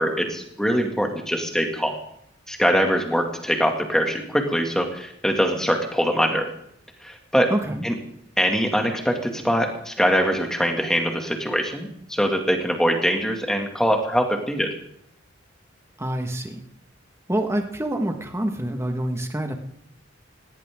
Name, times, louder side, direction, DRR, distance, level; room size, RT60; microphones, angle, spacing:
voice 1, 0.0-2.0 2.5-6.5 7.0-7.5 7.8-7.9 8.4-14.7, equal, 5° left, 2 dB, 2.3 m, -23 dB
voice 2, 7.5-7.8 16.0-16.6 17.3-19.5, right 1 dB, 15° right, 5 dB, 1.6 m, -26 dB
18.0 x 17.5 x 3.8 m, 0.72 s
head